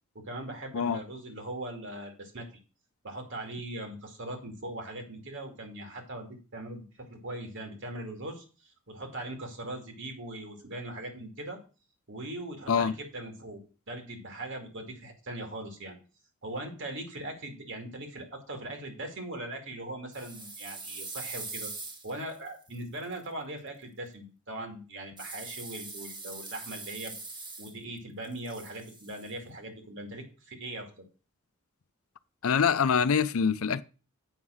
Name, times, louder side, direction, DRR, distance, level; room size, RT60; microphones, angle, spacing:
voice 1, 0.1-2.5 3.0-8.4 8.9-11.6 12.1-13.6 13.9-16.0 16.4-21.7 22.0-31.0, right 1 dB, 60° right, 2.4 m, -40 dB
sound 1, 20.1-23.2 25.2-28.0 28.2-29.3, right 3 dB, 20° right, 1.4 m, -42 dB
voice 2, 32.4-33.8, left 6 dB, 70° left, 0.5 m, -25 dB
8.1 x 5.6 x 6.3 m
head